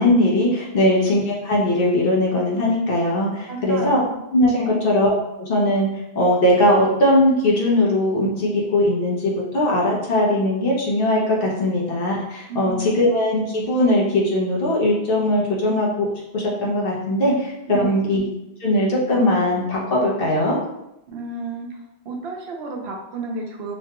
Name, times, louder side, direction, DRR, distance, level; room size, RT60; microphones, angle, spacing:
voice 1, 0.0-4.0 4.3-5.9 6.1-16.0 16.3-18.2 18.6-20.6, left 1 dB, 65° left, -4 dB, 1.0 m, -20 dB
voice 2, 3.5-4.2 4.6-4.8 12.5-12.9 17.7-18.0 21.1-21.7 22.1-23.8, right 3 dB, 80° right, 1 dB, 0.8 m, -32 dB
3.0 x 2.2 x 2.8 m, 0.87 s
omnidirectional pair, 1.0 m